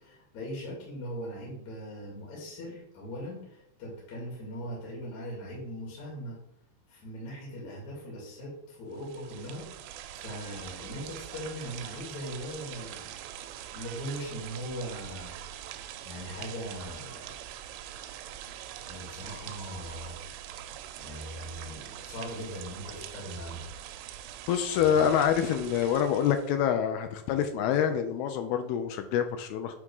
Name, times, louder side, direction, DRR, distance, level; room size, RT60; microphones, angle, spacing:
voice 1, 0.0-6.4 6.9-9.7 10.2-13.1 13.7-15.3 16.0-17.3 18.9-20.2 21.0-23.7 24.7-25.0, equal, 50° left, -5 dB, 3.3 m, -40 dB
sound 1, 8.9-26.6, right 11 dB, 90° right, 2.7 m, -43 dB
voice 2, 24.5-29.8, left 8 dB, 80° left, 7 dB, 2.3 m, -26 dB
8.3 x 3.6 x 5.3 m, 0.83 s
omnidirectional pair, 4.8 m